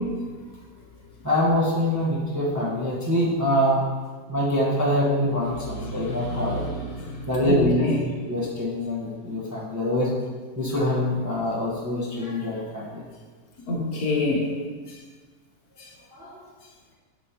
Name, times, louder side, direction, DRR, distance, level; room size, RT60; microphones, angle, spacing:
voice 1, 1.2-3.8 4.3-6.6 7.2-10.1 10.6-13.0 16.1-16.4, left 1 dB, 10° right, -8 dB, 1.2 m, -25 dB
voice 2, 5.8-8.0 13.7-14.5, left 2 dB, 65° left, -2 dB, 1.6 m, -27 dB
8.8 x 5.3 x 3.0 m, 1.4 s
omnidirectional pair, 1.7 m